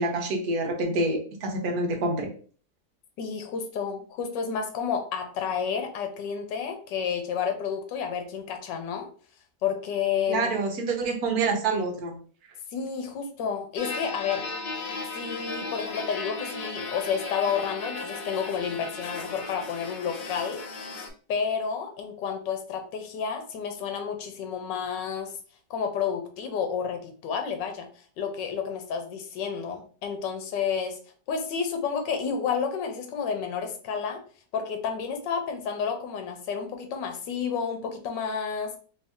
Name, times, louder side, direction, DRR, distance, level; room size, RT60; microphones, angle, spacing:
voice 1, 0.0-2.3 10.3-12.1, right 2 dB, 65° right, 3 dB, 1.3 m, -27 dB
voice 2, 3.2-9.1 9.6-10.5 12.7-14.4 15.1-20.6 21.3-25.3 25.7-31.0 31.3-34.2 34.5-38.7, left 6 dB, 85° left, 5 dB, 1.4 m, -30 dB
sound 1, 13.8-21.1, left 3 dB, 70° left, 1.2 m, -36 dB
3.3 x 2.7 x 3.5 m, 0.43 s
omnidirectional pair, 1.9 m